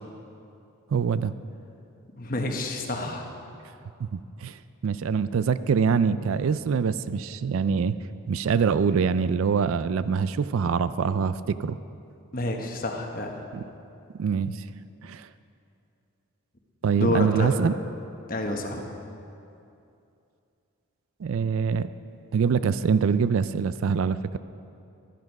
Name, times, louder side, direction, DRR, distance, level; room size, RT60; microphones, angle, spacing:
voice 1, 0.9-1.3 4.1-4.6 4.8-7.9 8.3-11.8 13.5-13.6 14.2-14.7 15.0-15.3 16.8-17.7 21.2-21.9 22.3-24.4, right 6 dB, 65° right, 14 dB, 0.3 m, -24 dB
voice 2, 2.2-3.3 12.3-13.3 17.0-17.5 18.3-18.8, left 1 dB, 40° left, 3 dB, 1.1 m, -28 dB
12.0 x 10.5 x 5.3 m, 2.6 s
head